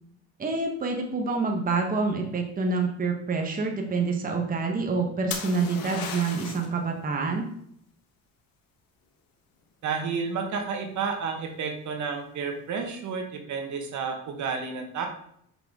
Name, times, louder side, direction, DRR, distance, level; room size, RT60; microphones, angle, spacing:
voice 1, 0.4-7.4, right 4 dB, 25° right, 2 dB, 1.1 m, -27 dB
sound 1, 5.3-6.8 10.4-10.9, left 6 dB, 85° left, 1.3 m, -35 dB
voice 2, 9.8-15.1, right 5 dB, 60° right, 4 dB, 1.3 m, -31 dB
6.1 x 5.8 x 3.6 m, 0.69 s
cardioid pair, 120°, 34 cm